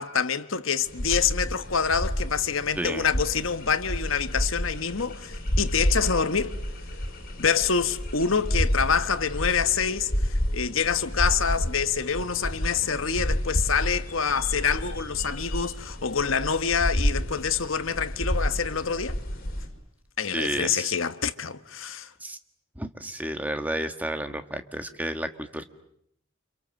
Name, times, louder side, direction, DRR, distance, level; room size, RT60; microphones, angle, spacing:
voice 1, 0.0-6.6 7.4-19.2 20.2-22.1, left 6 dB, 70° left, 1.3 m, -26 dB
sound 1, 0.8-19.7, equal, 45° left, 5.5 m, -30 dB
voice 2, 2.7-3.1 20.3-21.0 22.2-22.4 22.7-25.6, right 1 dB, 10° right, 1.7 m, -31 dB
29.0 x 27.0 x 7.6 m
head